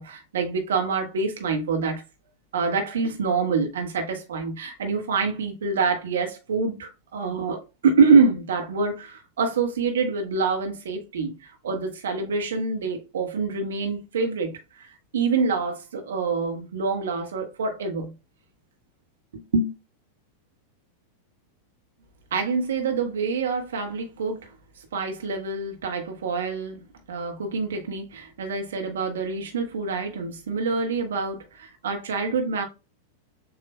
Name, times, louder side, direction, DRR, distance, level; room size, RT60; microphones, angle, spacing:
voice 1, 0.0-2.0 2.5-18.1 19.3-19.7 22.3-24.5 24.9-26.8 27.1-32.6, right 4 dB, 65° right, 1.0 m, -26 dB
6.9 x 2.4 x 2.2 m
figure-of-eight pair, 90°, 0 cm